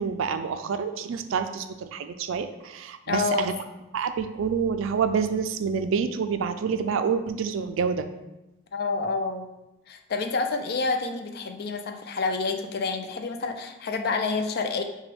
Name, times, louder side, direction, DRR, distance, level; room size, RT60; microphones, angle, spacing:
voice 1, 0.0-3.5 3.9-8.1, right 6 dB, 70° right, 9 dB, 0.3 m, -27 dB
voice 2, 3.1-3.5 8.7-9.5 9.9-14.8, left 4 dB, 50° left, 5 dB, 0.4 m, -28 dB
5.8 x 2.3 x 3.4 m, 0.98 s
head